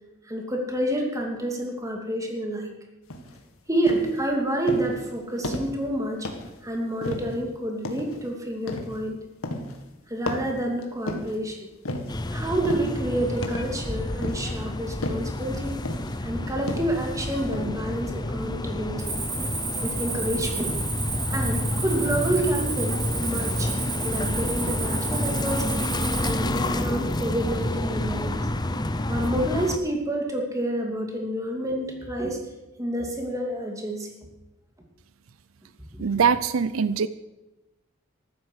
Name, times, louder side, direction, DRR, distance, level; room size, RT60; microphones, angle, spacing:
voice 1, 0.3-2.7 3.7-6.3 6.6-9.2 10.1-11.6 12.3-15.8 16.2-19.1 19.8-20.8 21.3-23.7 24.0-25.7 26.1-28.4 29.1-32.4 32.8-34.1 35.9-36.0, right 1 dB, 15° right, 1 dB, 2.7 m, -28 dB
sound 1, 3.1-3.4 3.9-4.2 4.7-5.0 5.4-5.8 6.2-6.6 7.0-7.4 7.8-8.2 8.7-9.0 9.4-9.8 10.3-11.4 11.8-12.2 12.6-13.0 13.4-13.8 14.2-14.6 15.0-15.3 15.9-16.2 16.7-17.1 17.5-17.7, left 1 dB, 85° left, 2.0 m, -33 dB
sound 2, 12.1-29.8, left 1 dB, 20° left, 0.8 m, -29 dB
Cricket, 19.0-26.4, right 4 dB, 35° right, 6.7 m, -32 dB
voice 2, 36.0-37.1, right 6 dB, 75° right, 15 dB, 0.5 m, -22 dB
14.5 x 12.5 x 6.4 m, 1.0 s
head